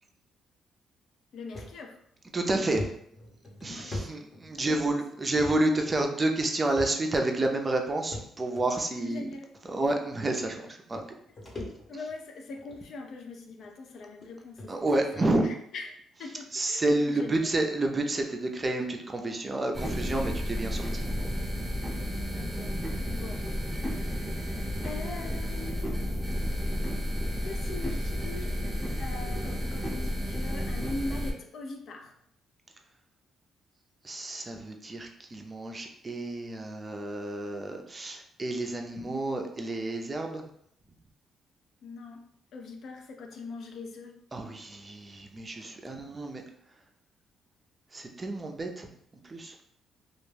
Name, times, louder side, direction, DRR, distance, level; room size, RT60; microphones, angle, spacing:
voice 1, 1.3-2.0 3.7-4.0 4.6-4.9 8.9-9.5 11.9-14.7 15.2-17.6 22.4-23.4 23.8-24.2 24.8-25.9 27.4-28.6 29.0-32.1 41.8-42.2 42.5-44.2, left 3 dB, 65° left, 2 dB, 0.4 m, -42 dB
sound 1, 1.5-1.7 2.2-2.3 2.8-4.8 5.3-5.6 5.9-6.0 6.7-7.2 8.1-8.6 9.5-9.6 10.6-10.7 10.9-12.1 12.6-12.8 13.6-13.7 14.2-14.3 14.6-14.7 15.1-15.3, left 1 dB, 35° left, 0.8 m, -40 dB
voice 2, 2.3-2.8 3.6-9.2 9.7-11.0 14.7-15.5 16.5-21.0 34.0-40.4 44.3-46.4 47.9-48.9 49.3-49.6, right 2 dB, 25° right, 3 dB, 0.4 m, -30 dB
sound 2, 19.7-31.3, equal, 5° right, 0.8 m, -32 dB
2.3 x 2.2 x 3.2 m, 0.70 s
cardioid pair, 90°, 0 cm